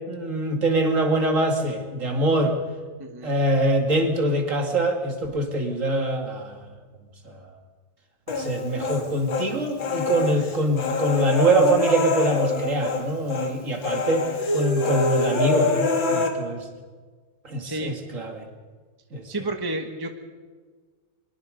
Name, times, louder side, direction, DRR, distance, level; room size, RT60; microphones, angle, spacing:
voice 1, 0.1-2.6 3.2-6.6 7.2-7.5 8.3-16.7 17.4-18.5 19.1-19.3, right 1 dB, 40° right, 4 dB, 2.6 m, -24 dB
voice 2, 3.0-3.3 17.6-17.9 19.3-20.1, right 2 dB, 15° right, 5 dB, 1.2 m, -30 dB
Human voice, 8.3-9.5 9.8-13.0 13.3-13.5 13.8-16.3, left 3 dB, 80° left, 2.7 m, -25 dB
23.5 x 22.0 x 5.3 m, 1.4 s
omnidirectional pair, 2.1 m